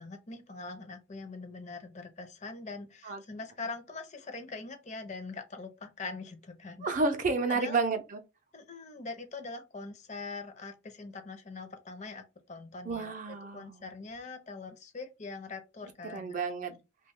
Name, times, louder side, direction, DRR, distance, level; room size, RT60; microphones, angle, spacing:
voice 1, 0.0-6.9 7.5-7.8 8.5-13.2 13.5-16.4, left 3 dB, 35° left, 0.5 m, -43 dB
voice 2, 6.8-8.2 12.8-13.9 16.1-16.7, right 3 dB, 40° right, 0.5 m, -31 dB
2.8 x 2.2 x 3.5 m
head